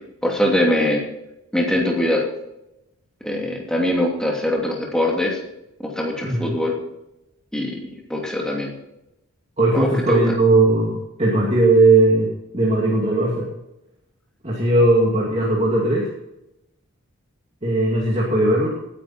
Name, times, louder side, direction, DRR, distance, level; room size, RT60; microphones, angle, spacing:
voice 1, 0.2-1.0 1.5-2.3 3.2-5.4 5.8-6.7 7.5-7.8 8.1-8.7 9.7-10.2, left 1 dB, 5° left, -1 dB, 2.9 m, -22 dB
voice 2, 9.6-13.5 14.4-16.1 17.6-18.7, right 2 dB, 30° right, -4 dB, 2.5 m, -18 dB
18.5 x 10.0 x 4.4 m, 0.89 s
head